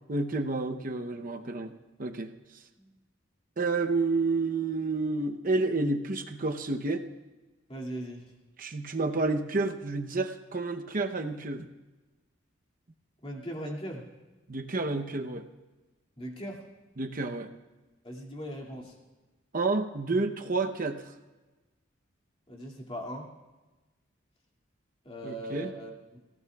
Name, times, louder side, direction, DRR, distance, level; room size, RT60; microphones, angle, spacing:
voice 1, 0.1-1.7 2.0-2.3 3.6-7.0 8.6-11.7 14.5-15.5 17.0-17.5 19.5-21.0 25.2-25.7, right 3 dB, 45° right, 6 dB, 0.8 m, -30 dB
voice 2, 7.7-8.3 13.2-14.0 16.2-16.6 18.0-18.9 22.5-23.3 25.0-26.2, equal, 25° left, -2 dB, 2.4 m, -39 dB
24.0 x 16.0 x 2.4 m, 1.2 s
head